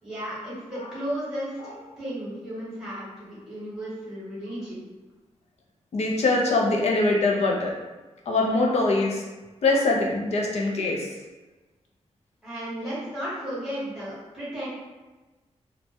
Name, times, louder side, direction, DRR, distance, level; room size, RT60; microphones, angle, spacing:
voice 1, 0.0-4.8 12.4-14.7, equal, 5° right, -10 dB, 1.0 m, -34 dB
voice 2, 5.9-7.7 8.3-9.2 9.6-11.1, left 2 dB, 60° left, -1 dB, 0.4 m, -23 dB
2.2 x 2.0 x 2.8 m, 1.2 s
wide cardioid pair, 180°, 12 cm